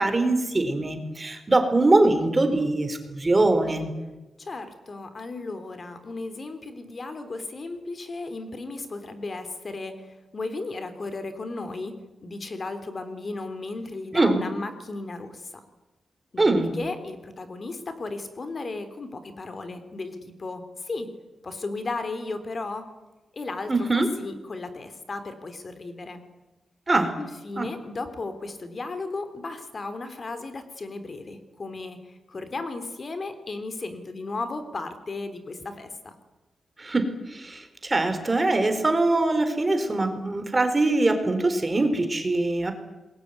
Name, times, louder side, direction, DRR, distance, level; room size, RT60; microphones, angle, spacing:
voice 1, 0.0-3.9 14.1-14.4 16.4-16.7 23.7-24.1 26.9-27.1 27.6-27.7 36.8-42.7, right 2 dB, 25° right, 8 dB, 4.4 m, -22 dB
voice 2, 4.4-15.6 16.3-21.1 21.4-22.9 23.3-26.2 27.2-36.1, left 3 dB, 45° left, 9 dB, 3.5 m, -35 dB
27.5 x 22.0 x 9.7 m, 1.1 s
wide cardioid pair, 100°, 0 cm